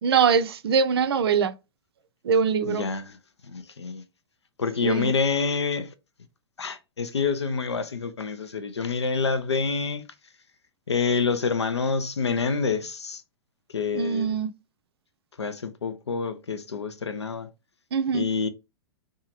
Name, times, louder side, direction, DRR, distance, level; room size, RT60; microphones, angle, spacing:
voice 1, 0.0-1.5 2.2-2.8 4.8-5.1 13.9-14.5 17.9-18.3, right 6 dB, 65° right, 0.4 m, -22 dB
voice 2, 2.7-3.1 3.5-4.0 4.6-5.9 6.6-10.0 10.9-13.2 13.7-14.4 15.4-17.5 18.1-18.5, left 5 dB, 80° left, 0.5 m, -27 dB
2.7 x 2.3 x 2.8 m
figure-of-eight pair, 105°, 14 cm